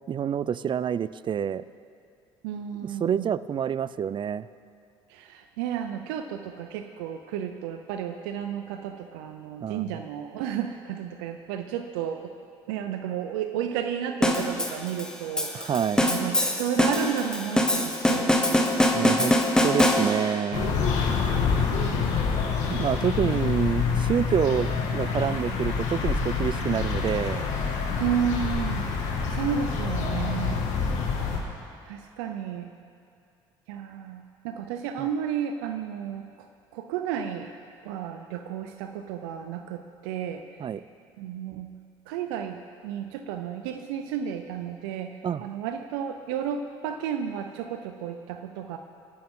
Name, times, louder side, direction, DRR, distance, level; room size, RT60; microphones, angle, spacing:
voice 1, 0.1-1.6 3.0-4.5 9.6-10.0 15.5-16.1 18.9-19.3 19.6-20.8 22.7-27.5 35.0-35.1 40.6-40.8 45.2-45.4, right 8 dB, 40° right, 17 dB, 0.5 m, -27 dB
voice 2, 2.4-3.3 5.1-12.3 12.7-18.6 21.5-22.1 22.7-22.8 23.2-23.6 28.0-30.6 31.9-32.7 33.7-36.2 36.7-37.5 37.8-40.4 41.2-41.7 42.1-45.1 45.4-48.8, right 8 dB, 85° right, 6 dB, 0.6 m, -32 dB
sound 1, 14.2-20.4, left 1 dB, 5° left, 1.8 m, -23 dB
sound 2, 20.5-31.4, left 5 dB, 70° left, 2.1 m, -27 dB
23.5 x 11.0 x 3.8 m, 2.5 s
hypercardioid pair, 65°, 12 cm